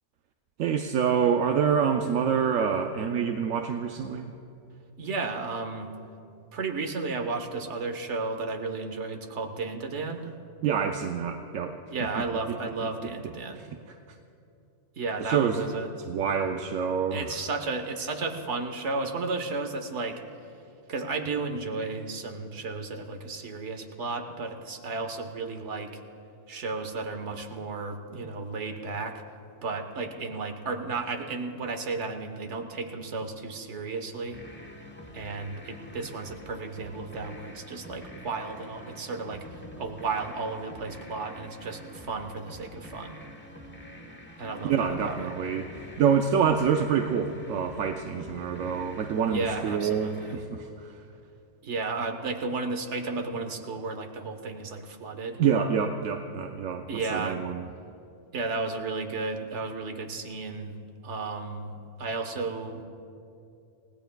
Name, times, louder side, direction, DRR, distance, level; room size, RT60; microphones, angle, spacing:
voice 1, 0.6-4.3 10.6-11.8 12.2-12.6 12.8-12.9 13.6-14.0 15.2-15.6 15.9-17.4 44.6-50.9 55.4-57.7, right 7 dB, 80° right, 4 dB, 1.0 m, -27 dB
voice 2, 5.0-5.9 6.5-10.3 11.9-13.6 15.0-15.9 17.1-20.2 20.9-26.0 26.5-29.2 29.6-34.4 35.1-39.4 39.8-43.2 44.4-45.3 49.3-50.4 51.6-55.4 56.9-57.4 58.3-60.8 61.0-62.8, right 3 dB, 65° right, 4 dB, 1.4 m, -33 dB
sound 1, 34.3-50.4, equal, 10° left, 1.0 m, -46 dB
29.0 x 17.0 x 2.3 m, 2.6 s
omnidirectional pair, 1.3 m